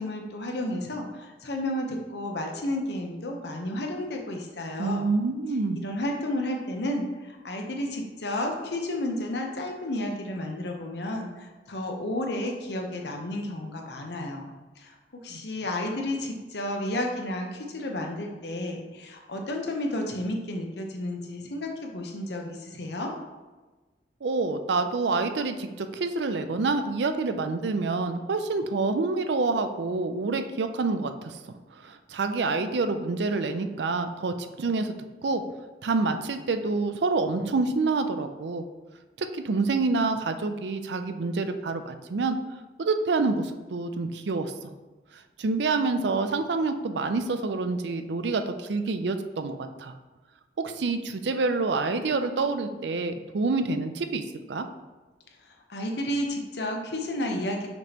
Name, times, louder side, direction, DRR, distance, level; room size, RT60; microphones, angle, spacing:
voice 1, 0.0-5.1 5.8-14.4 14.8-14.9 15.2-23.1 55.7-57.7, left 1 dB, 70° left, 2 dB, 0.9 m, -32 dB
voice 2, 4.8-5.8 15.3-15.4 24.2-31.4 31.7-34.9 35.2-35.4 35.8-38.6 39.2-42.4 42.8-44.7 45.4-49.9 50.6-54.2 54.5-54.7, right 3 dB, 70° right, 8 dB, 0.5 m, -27 dB
6.1 x 5.2 x 3.0 m, 1.2 s
head